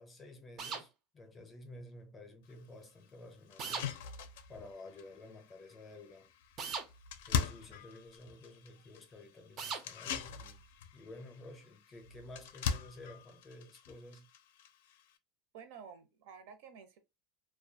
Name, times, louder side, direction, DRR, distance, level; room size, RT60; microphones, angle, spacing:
voice 1, 0.0-3.9 4.5-6.3 7.3-10.6 10.9-14.3, left 2 dB, 15° left, 0.5 m, -52 dB
sound 1, 0.6-0.9 3.6-3.9 6.6-6.9 9.6-9.9, right 5 dB, 30° right, 0.4 m, -38 dB
sound 2, 2.5-2.6 3.0-3.1 3.5-15.2, left 7 dB, 85° left, 0.4 m, -42 dB
voice 2, 15.5-17.0, right 6 dB, 65° right, 0.7 m, -51 dB
2.3 x 2.3 x 2.6 m
supercardioid pair, 160°, 0 cm